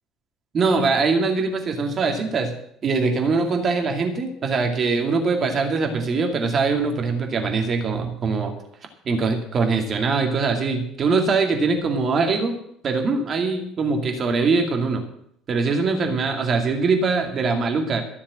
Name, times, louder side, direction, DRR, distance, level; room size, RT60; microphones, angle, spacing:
voice 1, 0.5-2.5 2.8-8.5 9.0-12.6 12.8-15.0 15.5-18.0, right 4 dB, 40° right, 3 dB, 2.3 m, -22 dB
13.5 x 7.2 x 7.6 m, 0.72 s
figure-of-eight pair, 60°, 0 cm